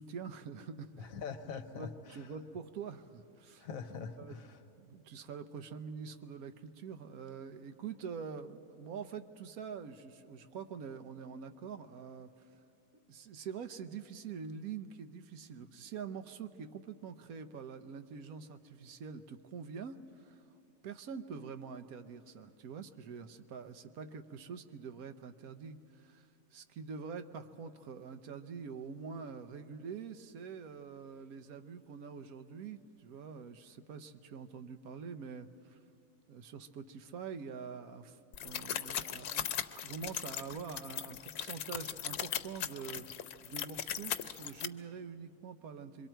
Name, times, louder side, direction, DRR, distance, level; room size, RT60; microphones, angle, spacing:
voice 1, 0.0-1.1 1.7-3.7 4.2-4.3 4.8-12.5 13.1-20.4 20.8-35.8 36.3-43.1 43.4-46.1, right 6 dB, 75° right, 9 dB, 1.2 m, -45 dB
voice 2, 1.0-2.3 3.6-4.6, left 6 dB, 65° left, 8 dB, 1.3 m, -43 dB
sound 1, 38.3-44.7, left 10 dB, 90° left, 1.2 m, -38 dB
26.0 x 23.0 x 4.5 m, 2.7 s
omnidirectional pair, 1.6 m